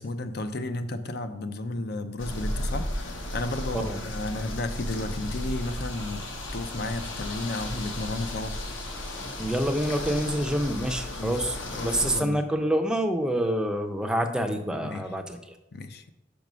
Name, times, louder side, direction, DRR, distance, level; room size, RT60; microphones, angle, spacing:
voice 1, 0.0-6.3 6.5-8.6 11.2-11.4 11.7-12.4 14.8-15.1 15.7-16.1, left 2 dB, 55° left, 9 dB, 0.6 m, -33 dB
sound 1, 2.2-12.2, left 1 dB, 75° left, 1.3 m, -34 dB
voice 2, 9.4-15.5, equal, 5° right, 4 dB, 0.6 m, -27 dB
5.8 x 5.3 x 6.1 m, 0.92 s
head